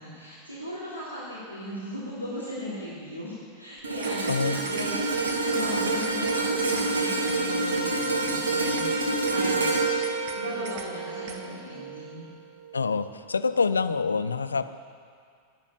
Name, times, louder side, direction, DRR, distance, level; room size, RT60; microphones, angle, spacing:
voice 1, 0.0-12.2, left 1 dB, 85° right, -10 dB, 3.6 m, -38 dB
sound 1, 3.8-4.4 4.6-4.9 5.3-5.4 5.8-6.4 6.6-6.9 7.3-7.4 7.8-8.4 8.6-8.9 9.3-9.4 9.8-10.4 10.6-10.9 11.3-11.4, right 6 dB, 50° right, 1.5 m, -42 dB
sound 2, 3.8-12.2 12.6-12.8, right 3 dB, 70° right, 1.7 m, -27 dB
voice 2, 4.3-4.6 12.7-14.7, left 4 dB, 75° left, 12 dB, 0.6 m, -26 dB
12.0 x 9.8 x 9.8 m, 2.2 s
figure-of-eight pair, 90°, 0 cm